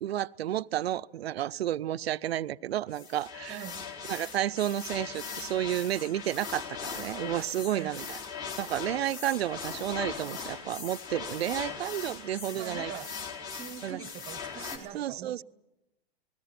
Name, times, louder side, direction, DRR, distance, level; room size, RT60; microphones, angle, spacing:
voice 1, 0.0-3.6 4.1-8.2 8.6-12.9 13.8-14.0 14.9-15.4, right 12 dB, 75° right, 0.7 m, -31 dB
sound 1, 2.9-14.8, left 6 dB, 40° left, 4.5 m, -40 dB
voice 2, 3.5-3.9 7.7-7.9 12.5-13.1 13.5-15.4, right 10 dB, 20° right, 1.1 m, -43 dB
30.0 x 20.5 x 6.0 m
hypercardioid pair, 140°, 31 cm